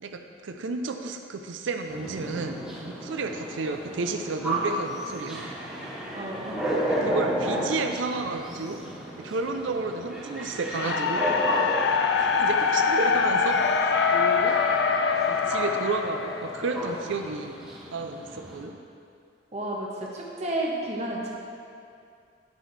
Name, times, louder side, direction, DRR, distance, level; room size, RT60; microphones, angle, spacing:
voice 1, 0.0-5.5 7.0-8.8 9.2-11.3 12.2-13.6 13.8-14.6 15.3-17.5 17.9-18.7, right 3 dB, 80° right, 5 dB, 0.5 m, -32 dB
sound 1, 1.9-18.6, right 1 dB, 5° right, 1.3 m, -33 dB
voice 2, 6.1-6.6 19.5-21.3, right 1 dB, 35° right, -3 dB, 1.1 m, -31 dB
sound 2, 10.7-16.9, left 5 dB, 60° left, 0.4 m, -24 dB
10.5 x 5.8 x 3.3 m, 2.4 s
head